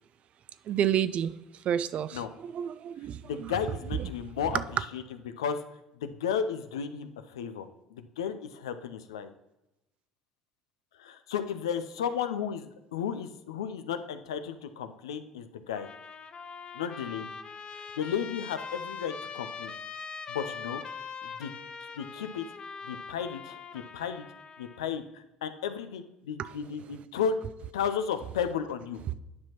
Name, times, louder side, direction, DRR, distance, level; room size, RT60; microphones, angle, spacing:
voice 1, 0.7-1.3 1.6-3.5 4.0-4.1 4.5-4.6 26.4-26.6, right 9 dB, 50° right, 15 dB, 0.4 m, -30 dB
voice 2, 3.2-4.6 4.9-5.0 5.4-5.6 6.0-7.7 7.9-9.3 11.0-15.9 16.7-17.3 18.0-19.7 20.3-20.8 21.2-21.5 22.0-22.5 22.8-24.2 24.6-27.4 27.7-29.0, left 7 dB, 80° left, 10 dB, 0.5 m, -33 dB
Trumpet, 15.7-24.9, left 5 dB, 40° left, 0.6 m, -42 dB
9.5 x 5.8 x 2.9 m, 0.92 s
hypercardioid pair, 60°, 3 cm